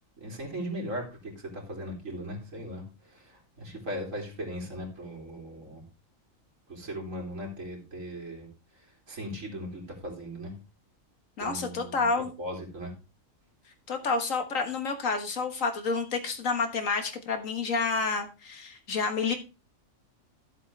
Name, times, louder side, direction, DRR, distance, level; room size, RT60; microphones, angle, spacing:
voice 1, 0.2-5.8 6.7-8.5 8.7-10.5 11.4-12.1 12.4-12.9, equal, 70° right, -1 dB, 3.4 m, -38 dB
voice 2, 11.4-12.3 13.9-19.4, left 4 dB, 75° left, 6 dB, 1.9 m, -29 dB
13.5 x 7.5 x 3.3 m, 0.30 s
omnidirectional pair, 1.4 m